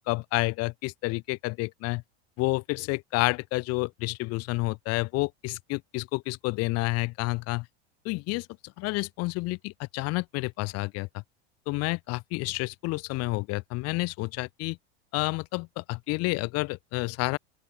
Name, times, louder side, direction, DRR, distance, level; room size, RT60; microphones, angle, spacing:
voice 1, 0.0-2.0 2.4-7.7 8.0-8.5 8.8-11.2 11.7-14.8 15.1-17.4, left 24 dB, 50° left, 7.9 m, -29 dB
open air
supercardioid pair, 150°, 32 cm